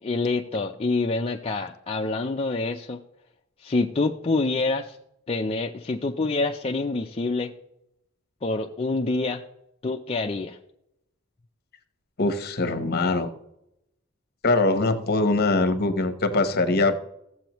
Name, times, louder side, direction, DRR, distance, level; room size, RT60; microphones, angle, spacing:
voice 1, 0.0-3.0 3.6-5.0 5.3-7.5 8.4-9.4 9.8-10.6, left 3 dB, 30° left, 1 dB, 0.5 m, -26 dB
voice 2, 12.2-13.3 14.4-16.9, left 2 dB, 50° left, 9 dB, 1.0 m, -22 dB
15.0 x 7.8 x 3.0 m, 0.81 s
head